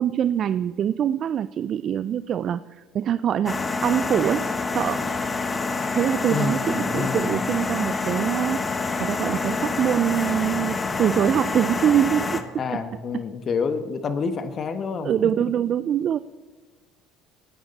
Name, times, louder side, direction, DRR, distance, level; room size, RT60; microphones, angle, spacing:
voice 1, 0.0-5.0 5.9-12.8 15.0-16.2, right 9 dB, 50° right, 14 dB, 0.3 m, -24 dB
sound 1, 3.5-12.4, left 4 dB, 25° left, 1.1 m, -27 dB
voice 2, 6.3-7.3 12.6-15.3, left 5 dB, 45° left, 9 dB, 1.1 m, -28 dB
18.5 x 9.0 x 4.1 m, 1.4 s
supercardioid pair, 85°, 0 cm